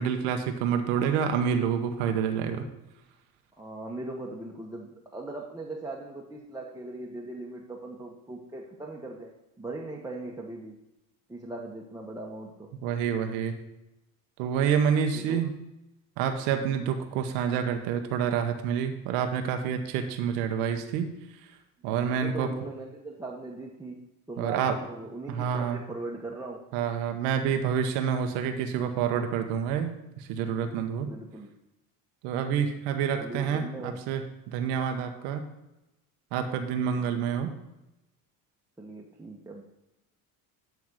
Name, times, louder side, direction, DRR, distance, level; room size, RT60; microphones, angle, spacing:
voice 1, 0.0-2.7 12.8-13.5 14.4-15.5 16.2-21.1 21.8-22.5 24.4-24.8 25.3-25.8 26.7-31.1 32.2-35.4 36.3-37.5, right 7 dB, 75° right, 6 dB, 1.0 m, -28 dB
voice 2, 3.6-10.8 11.3-12.8 15.1-15.5 21.9-26.7 31.1-31.5 32.9-34.0 38.8-39.6, right 2 dB, 5° right, -2 dB, 1.1 m, -39 dB
9.3 x 3.5 x 6.2 m, 0.94 s
hypercardioid pair, 70°, 49 cm